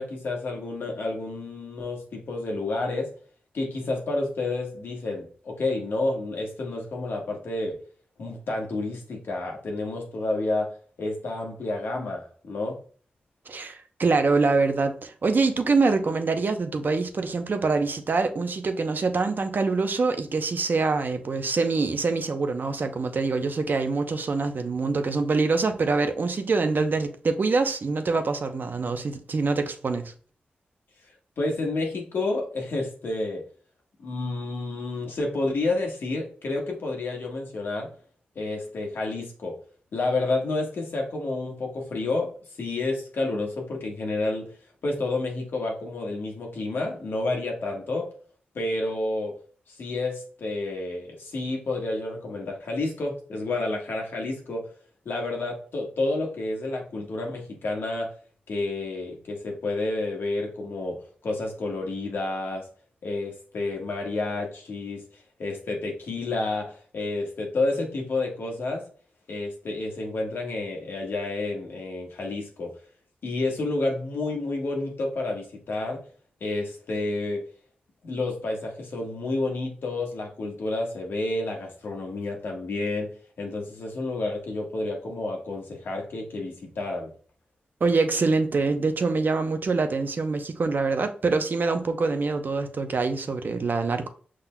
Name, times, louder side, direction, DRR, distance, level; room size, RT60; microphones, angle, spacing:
voice 1, 0.0-3.1 3.5-7.8 8.2-12.8 31.4-33.4 34.0-37.9 38.3-39.6 39.9-42.3 42.6-44.5 44.8-48.1 48.5-49.3 49.8-54.7 55.0-58.1 58.5-62.7 63.0-65.0 65.4-68.8 69.3-72.7 73.2-76.0 76.4-77.4 78.0-83.1 83.4-87.1, left 2 dB, 80° left, 1.3 m, -30 dB
voice 2, 13.5-30.1 87.8-94.1, right 4 dB, 60° right, 0.7 m, -25 dB
5.7 x 3.8 x 2.2 m
cardioid pair, 60°, 4 cm